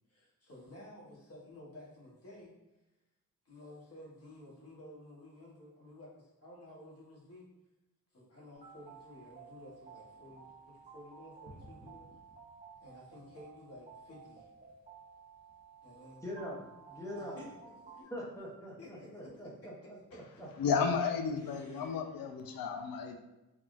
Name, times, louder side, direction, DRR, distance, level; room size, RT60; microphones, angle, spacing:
voice 1, 0.1-2.5 3.4-7.5 8.1-12.1 12.8-14.5 15.8-16.2 17.1-17.5 17.8-18.1 18.8-19.4 21.4-21.9, left 1 dB, 45° left, -5 dB, 1.2 m, -53 dB
sound 1, 8.5-18.0, right 5 dB, 25° right, 0.5 m, -54 dB
voice 2, 16.2-16.6 16.9-17.4 18.1-19.5 19.9-20.0, equal, 10° left, -4 dB, 0.7 m, -42 dB
voice 3, 20.6-23.1, left 6 dB, 85° left, 5 dB, 0.5 m, -32 dB
3.5 x 2.3 x 2.4 m, 0.99 s
wide cardioid pair, 125°, 33 cm